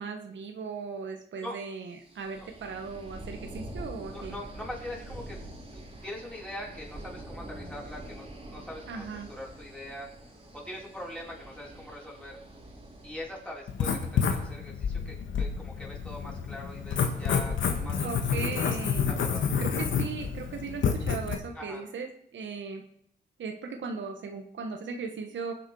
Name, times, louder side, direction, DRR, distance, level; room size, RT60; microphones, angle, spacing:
voice 1, 0.0-4.4 8.9-9.3 17.7-19.1 19.6-22.8 23.4-25.5, right 5 dB, 75° right, 4 dB, 1.5 m, -38 dB
sound 1, 2.0-13.8, right 1 dB, 30° right, 3.1 m, -45 dB
voice 2, 4.1-5.4 5.7-10.1 10.5-12.4 13.0-18.4 18.8-19.5 21.5-21.8, left 1 dB, 5° left, -3 dB, 4.8 m, -42 dB
Writing, 13.7-21.3, left 6 dB, 85° left, 1.8 m, -29 dB
21.5 x 7.8 x 4.7 m, 0.68 s
cardioid pair, 90°, 19 cm